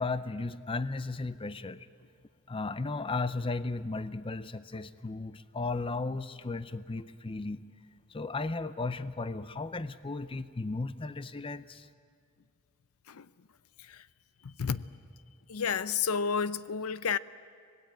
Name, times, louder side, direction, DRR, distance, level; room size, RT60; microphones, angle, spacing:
voice 1, 0.0-1.9 2.5-7.6 8.1-11.9, left 3 dB, 25° left, 0.6 m, -35 dB
voice 2, 14.4-14.8 15.5-17.2, left 6 dB, 85° left, 0.6 m, -31 dB
25.0 x 19.0 x 9.2 m
head